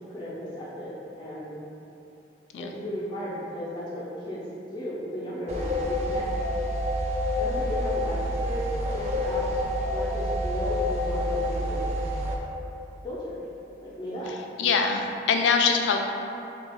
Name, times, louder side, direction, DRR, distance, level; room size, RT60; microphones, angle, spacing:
voice 1, 0.1-0.9 1.2-1.5 2.5-4.4 4.7-6.3 7.4-9.4 9.9-11.9 13.0-13.4 13.8-14.3, equal, 25° left, -9 dB, 0.5 m, -35 dB
sound 1, 5.5-12.4, left 1 dB, 35° right, 0.3 m, -28 dB
voice 2, 14.3-16.0, left 5 dB, 90° left, 3 dB, 0.3 m, -24 dB
3.3 x 2.3 x 3.4 m, 2.9 s
head